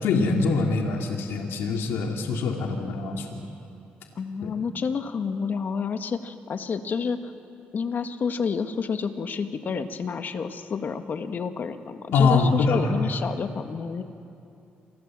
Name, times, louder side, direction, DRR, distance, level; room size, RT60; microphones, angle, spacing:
voice 1, 0.0-3.4 4.4-4.5 12.1-12.9, left 4 dB, 85° left, 1 dB, 2.7 m, -24 dB
voice 2, 4.2-7.3 7.7-14.0, left 5 dB, 55° left, 7 dB, 1.9 m, -29 dB
28.0 x 25.5 x 7.7 m, 2.7 s
cardioid pair, 80°, 4 cm